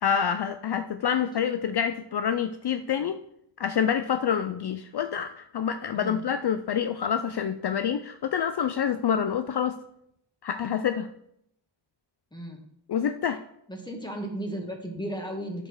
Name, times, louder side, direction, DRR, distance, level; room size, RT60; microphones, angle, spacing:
voice 1, 0.0-3.2 3.6-9.8 10.4-11.1 12.9-13.4, left 8 dB, 60° left, 10 dB, 0.5 m, -27 dB
voice 2, 12.3-12.6 13.7-15.7, right 1 dB, 10° left, 2 dB, 2.1 m, -35 dB
8.7 x 6.8 x 4.8 m, 0.75 s
cardioid pair, 55°, 45 cm